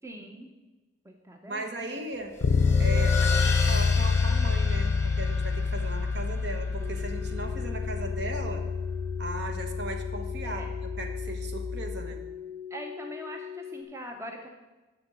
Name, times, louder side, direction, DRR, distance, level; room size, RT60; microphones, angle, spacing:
voice 1, 0.0-0.5 1.0-2.0 6.4-6.5 10.4-10.7 12.7-14.5, right 1 dB, 15° right, 3 dB, 0.6 m, -42 dB
voice 2, 1.5-2.3 2.8-8.6 9.2-12.2, right 2 dB, 60° right, 4 dB, 1.1 m, -37 dB
sound 1, 2.3-9.3, left 3 dB, 15° left, 0.8 m, -36 dB
Bass guitar, 2.4-12.2, left 4 dB, 80° left, 0.5 m, -27 dB
sound 2, 6.8-13.8, left 8 dB, 35° right, 1.0 m, -41 dB
7.9 x 6.0 x 6.7 m, 1.2 s
head